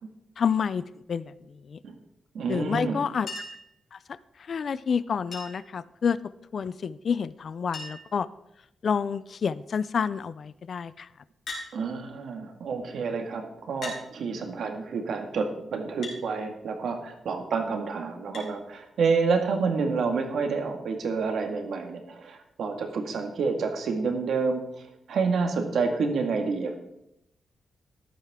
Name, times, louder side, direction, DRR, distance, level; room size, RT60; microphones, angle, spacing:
voice 1, 0.4-0.8 1.1-1.3 1.6-1.8 2.5-3.3 3.9-4.0 4.4-6.2 6.5-8.3 8.8-11.1, left 6 dB, 50° left, 16 dB, 0.4 m, -28 dB
voice 2, 2.3-3.0 11.7-24.6 25.1-26.8, right 4 dB, 75° right, 4 dB, 1.8 m, -28 dB
Chink clink, 3.3-3.7 5.3-5.7 7.1-7.2 7.4-7.5 7.7-8.2 8.9-9.3 11.5-11.7 12.8-12.9 13.8-14.0 16.0-16.2 18.3-18.5 19.9-20.0, left 2 dB, 70° left, 3.8 m, -38 dB
14.0 x 11.0 x 3.7 m, 0.84 s
wide cardioid pair, 135°, 0 cm